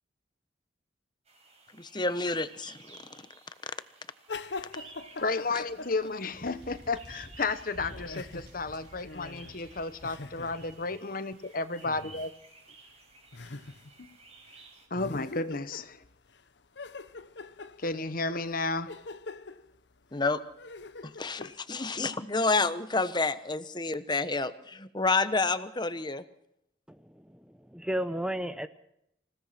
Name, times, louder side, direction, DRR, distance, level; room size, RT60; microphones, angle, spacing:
sound 1, 1.2-14.9, right 3 dB, 35° right, 5.3 m, -55 dB
voice 1, 1.8-3.2 20.1-20.4 21.0-26.2, left 3 dB, 25° left, 12 dB, 1.1 m, -29 dB
sound 2, 4.3-6.9 7.2-11.0 11.8-12.3 12.7-12.8 13.3-14.2 14.5-14.6 14.9-16.4 16.8-21.6, left 3 dB, 70° left, 1.0 m, -44 dB
voice 2, 5.2-12.3 14.9-16.0 17.8-18.9, left 3 dB, 50° left, 13 dB, 1.1 m, -32 dB
sound 3, 6.3-10.8, equal, 65° right, 4.7 m, -51 dB
voice 3, 26.9-27.4 27.7-28.7, equal, 5° right, 11 dB, 0.7 m, -33 dB
27.0 x 17.0 x 5.9 m, 0.79 s
head